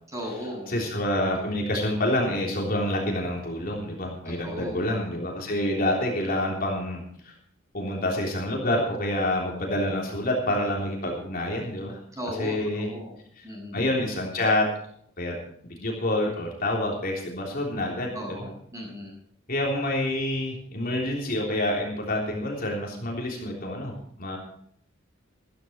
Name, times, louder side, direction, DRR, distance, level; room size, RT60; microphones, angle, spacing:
voice 1, 0.1-0.7 4.3-4.9 12.1-13.2 13.4-13.8 18.1-19.2, equal, 15° right, -1 dB, 7.1 m, -36 dB
voice 2, 0.7-7.3 7.7-12.0 12.3-12.9 13.4-13.5 13.7-14.7 15.2-15.3 15.6-18.4 19.5-24.4, left 1 dB, 45° left, -1 dB, 3.4 m, -27 dB
14.0 x 14.0 x 4.6 m, 0.62 s
head